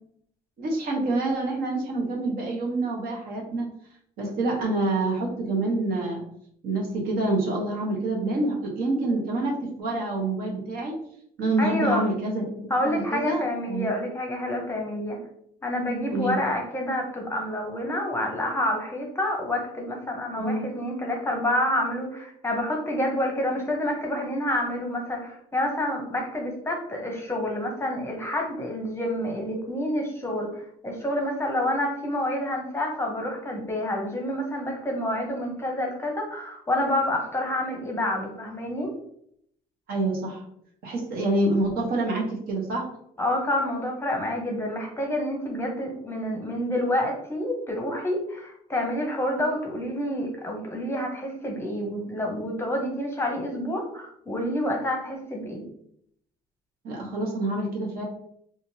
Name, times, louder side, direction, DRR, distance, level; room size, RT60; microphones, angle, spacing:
voice 1, 0.6-3.7 4.2-6.2 6.6-10.9 11.4-13.9 16.1-16.4 20.3-20.6 39.9-40.4 40.8-42.8 56.8-58.0, right 2 dB, 60° right, -1 dB, 1.1 m, -27 dB
voice 2, 11.6-12.0 12.7-15.2 15.6-38.9 43.2-55.7, left 1 dB, 15° left, 1 dB, 0.8 m, -28 dB
3.5 x 2.5 x 2.7 m, 0.69 s
cardioid pair, 110°, 17 cm